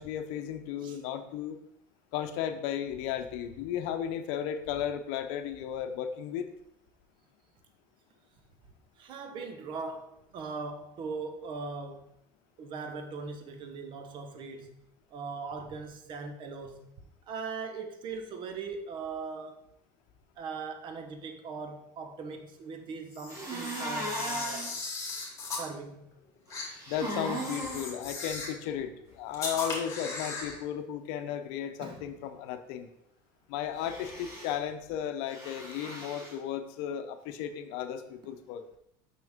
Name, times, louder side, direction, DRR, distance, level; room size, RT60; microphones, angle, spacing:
voice 1, 0.0-1.6 2.1-6.5 26.9-32.9 33.5-38.6, left 9 dB, 75° left, 0.7 m, -35 dB
voice 2, 9.0-12.1 12.6-14.7 15.1-16.9 17.3-19.6 20.4-24.7 25.5-26.1 31.8-32.1, right 4 dB, 50° right, 1.0 m, -40 dB
Camera, 23.1-25.7 26.5-26.7 27.3-28.6 29.3-30.6, left 3 dB, 30° left, 2.4 m, -37 dB
sound 1, 23.3-24.7 26.5-27.9 33.8-34.5 35.3-36.3, right 1 dB, 30° right, 2.5 m, -37 dB
6.0 x 5.9 x 3.6 m
supercardioid pair, 115°, 11 cm